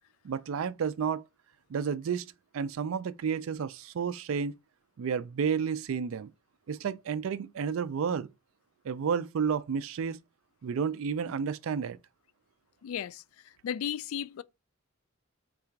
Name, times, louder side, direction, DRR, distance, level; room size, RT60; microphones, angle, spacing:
voice 1, 0.2-1.2 1.7-4.5 5.0-6.3 6.7-8.3 8.8-10.2 10.6-12.0, right 6 dB, 75° right, 0.4 m, -31 dB
voice 2, 12.8-13.2 13.6-14.4, left 9 dB, 90° left, 0.3 m, -34 dB
3.8 x 2.4 x 4.4 m
head